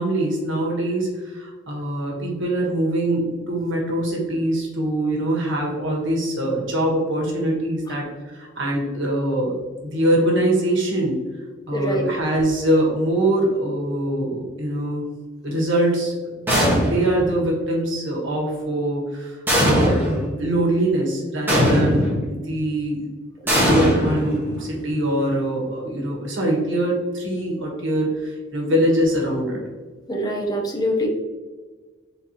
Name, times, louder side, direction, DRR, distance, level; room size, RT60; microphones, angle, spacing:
voice 1, 0.0-9.6 9.8-11.2 11.7-15.0 15.4-16.3 16.6-19.4 19.7-23.0 23.6-29.6, right 1 dB, 70° right, -1 dB, 1.3 m, -23 dB
voice 2, 11.7-12.1 30.1-31.1, equal, 20° left, 0 dB, 0.7 m, -24 dB
sound 1, 16.5-17.2 19.5-20.3 21.5-22.2 23.5-24.7, equal, 10° right, 1.4 m, -19 dB
4.1 x 3.9 x 2.9 m, 1.4 s
head